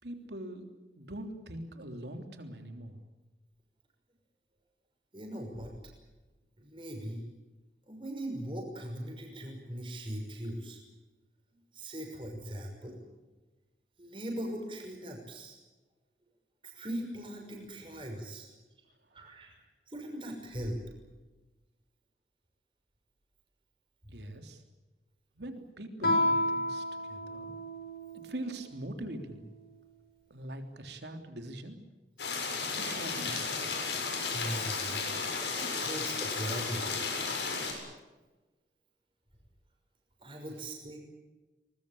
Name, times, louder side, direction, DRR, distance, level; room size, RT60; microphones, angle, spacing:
voice 1, 0.0-3.0 24.1-24.6 25.3-27.5 28.1-29.4 30.3-31.8 32.8-33.6, right 1 dB, 80° right, 6 dB, 3.4 m, -42 dB
voice 2, 5.1-5.8 6.6-7.2 7.9-10.8 11.5-13.0 14.0-15.6 16.6-18.5 19.1-19.5 19.9-20.8 34.1-35.2 35.6-37.1 40.2-41.0, right 1 dB, 30° right, 1 dB, 5.8 m, -40 dB
Guitar, 26.0-28.5, left 1 dB, 60° left, 5.7 m, -31 dB
sound 1, 32.2-37.7, left 4 dB, 85° left, 7.4 m, -34 dB
23.5 x 21.5 x 8.6 m, 1.1 s
head